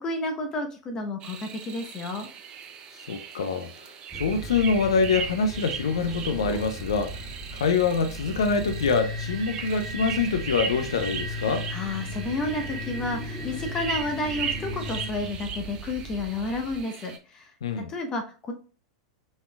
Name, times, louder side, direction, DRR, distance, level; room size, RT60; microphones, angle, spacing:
voice 1, 0.0-2.3 11.7-17.5 17.9-18.5, left 2 dB, 25° left, 0.9 m, -31 dB
sound 1, 1.2-17.2, right 7 dB, 35° right, 0.5 m, -38 dB
voice 2, 2.9-11.7 17.6-17.9, left 4 dB, 70° left, 0.4 m, -25 dB
sound 2, 4.1-16.8, right 2 dB, 10° right, 1.8 m, -40 dB
sound 3, 4.4-15.1, left 3 dB, 75° right, 0.8 m, -38 dB
4.1 x 3.6 x 2.3 m
figure-of-eight pair, 90°, 3 cm